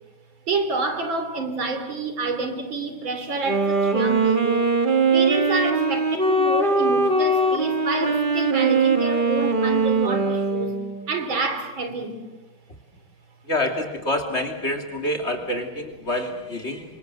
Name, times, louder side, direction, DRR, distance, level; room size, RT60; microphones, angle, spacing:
voice 1, 0.5-4.7 5.1-10.7 11.1-12.2, right 3 dB, 65° right, 7 dB, 3.7 m, -28 dB
Wind instrument woodwind instrument, 3.4-11.1, right 3 dB, 25° right, 1.9 m, -21 dB
voice 2, 13.4-16.8, left 1 dB, 30° left, 4 dB, 3.1 m, -27 dB
27.0 x 25.5 x 8.0 m, 1.1 s
omnidirectional pair, 2.3 m